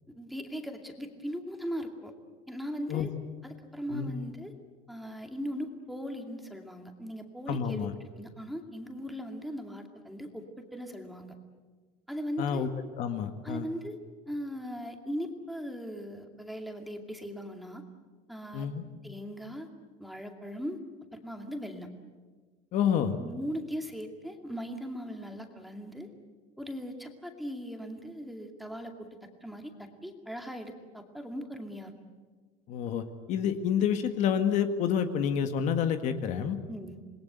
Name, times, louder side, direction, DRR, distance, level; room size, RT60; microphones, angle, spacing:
voice 1, 0.1-2.1 2.5-3.1 3.4-4.5 4.9-11.3 12.1-12.7 13.4-14.0 14.3-17.8 18.3-18.7 19.0-19.7 20.0-20.8 21.1-21.9 23.2-26.1 26.6-29.1 29.4-31.9 36.7-37.0, equal, ahead, 3 dB, 2.4 m, -39 dB
voice 2, 7.5-7.9 12.4-12.7 12.9-13.7 18.5-18.8 22.7-23.2 32.7-36.6, left 8 dB, 50° left, 8 dB, 1.8 m, -28 dB
27.5 x 20.5 x 8.2 m, 1.4 s
cardioid pair, 150°, 16 cm